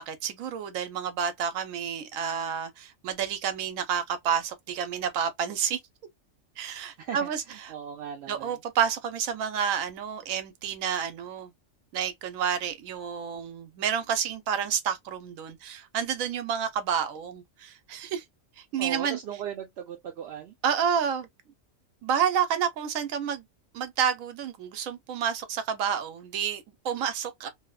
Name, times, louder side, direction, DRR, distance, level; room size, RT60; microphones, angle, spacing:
voice 1, 0.0-5.8 6.6-7.7 8.3-11.5 11.9-18.2 18.6-19.2 20.6-21.3 22.0-23.4 23.7-27.5, right 8 dB, 80° right, 1.0 m, -29 dB
voice 2, 7.0-8.6 18.8-20.5, right 8 dB, 65° right, 0.7 m, -38 dB
2.7 x 2.0 x 2.3 m
omnidirectional pair, 1.4 m